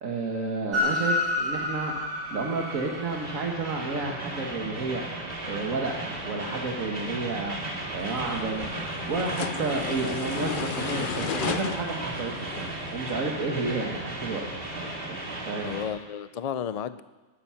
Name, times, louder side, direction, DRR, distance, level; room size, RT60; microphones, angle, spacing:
voice 1, 0.0-5.0 5.4-7.6 7.9-8.7 9.1-14.6 15.1-15.2 15.4-15.7, right 3 dB, 85° right, 0 dB, 1.8 m, -31 dB
Train, 0.7-15.9, equal, 45° right, 2.4 m, -33 dB
sound 1, 8.0-13.1, left 7 dB, 50° left, 0.7 m, -35 dB
voice 2, 15.6-17.0, left 8 dB, 70° left, 14 dB, 0.3 m, -33 dB
18.5 x 12.0 x 5.7 m, 1.3 s
omnidirectional pair, 1.4 m